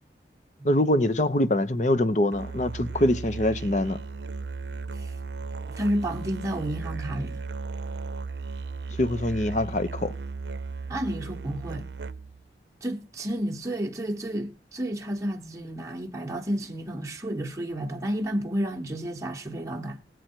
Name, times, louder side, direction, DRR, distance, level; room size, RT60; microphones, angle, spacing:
voice 1, 0.6-4.0 9.0-10.1, left 1 dB, 40° left, 0.8 m, -24 dB
Musical instrument, 2.3-12.5, right 4 dB, 75° right, 0.6 m, -36 dB
voice 2, 5.7-7.4 10.9-11.9 12.8-20.0, right 1 dB, 20° right, 1.0 m, -31 dB
19.0 x 7.8 x 4.5 m
head